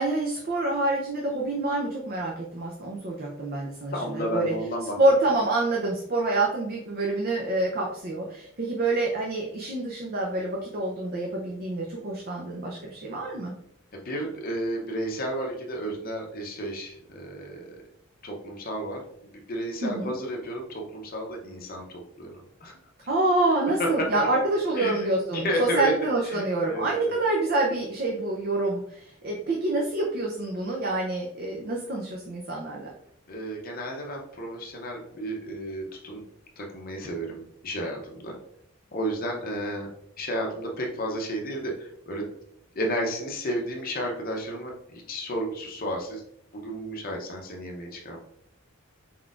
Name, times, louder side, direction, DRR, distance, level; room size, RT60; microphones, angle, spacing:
voice 1, 0.0-4.5 5.0-13.5 19.8-20.1 23.1-32.9, right 2 dB, 45° right, -2 dB, 0.6 m, -27 dB
voice 2, 3.9-5.0 13.9-17.8 18.2-19.0 19.5-22.3 22.6-22.8 23.6-24.3 24.8-25.1 25.3-25.9 26.3-27.2 33.3-36.2 36.6-38.3 38.9-39.9 40.2-42.2 42.8-46.2 46.5-48.2, equal, 40° left, 1 dB, 0.6 m, -32 dB
4.4 x 4.0 x 2.4 m, 0.73 s
head